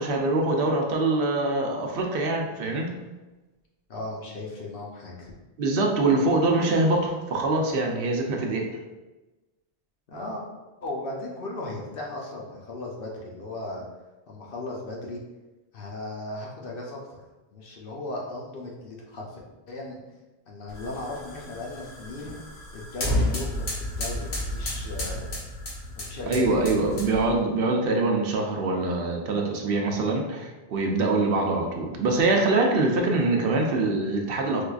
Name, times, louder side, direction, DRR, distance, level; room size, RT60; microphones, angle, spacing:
voice 1, 0.0-2.9 5.6-8.6 26.3-34.6, right 2 dB, 70° right, 1 dB, 0.8 m, -24 dB
voice 2, 3.9-5.3 10.1-10.5 10.8-13.8 14.3-15.2 15.7-17.2 17.5-19.4 19.7-20.0 20.5-22.4 22.7-25.3 26.0-26.6, left 2 dB, 65° left, -2 dB, 0.8 m, -36 dB
sound 1, 20.7-27.4, left 1 dB, 90° left, 1.2 m, -32 dB
4.4 x 2.4 x 2.3 m, 1.1 s
omnidirectional pair, 1.1 m